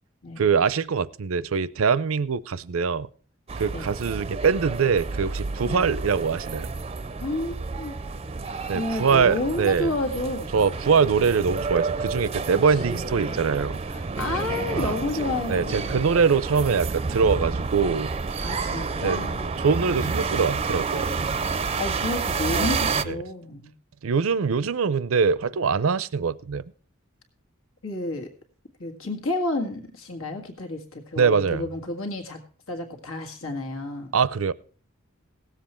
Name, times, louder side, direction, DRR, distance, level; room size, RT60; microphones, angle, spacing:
voice 1, 0.4-3.1 3.6-6.7 8.7-9.9 10.5-13.8 14.7-14.9 15.5-18.1 19.0-19.2 19.6-21.1 23.1-23.2 24.0-26.6 31.2-31.6 34.1-34.5, right 5 dB, 85° right, 19 dB, 0.5 m, -23 dB
sound 1, 3.5-23.0, right 4 dB, 30° right, 0.5 m, -30 dB
voice 2, 7.2-8.0 8.7-10.5 12.7-12.8 13.1-13.5 13.9-16.1 18.4-19.5 21.8-23.7 27.8-28.3 28.8-32.4 32.7-34.1, left 2 dB, 85° left, 5 dB, 1.9 m, -31 dB
17.5 x 7.6 x 4.4 m, 0.41 s
head